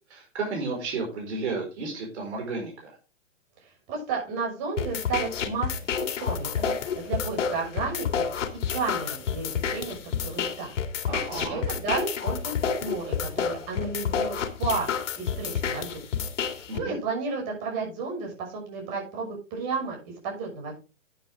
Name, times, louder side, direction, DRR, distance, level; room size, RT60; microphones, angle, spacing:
voice 1, 0.1-3.0 11.1-11.6 16.7-17.0, right 3 dB, 60° right, 0 dB, 4.9 m, -33 dB
voice 2, 3.6-5.7 6.2-8.2 8.7-10.7 11.3-14.9 15.1-15.9 16.5-20.7, right 4 dB, 35° right, 0 dB, 6.3 m, -32 dB
sound 1, 4.8-16.8, left 7 dB, 65° left, 2.2 m, -29 dB
11.0 x 9.3 x 3.6 m, 0.32 s
hypercardioid pair, 150°, 38 cm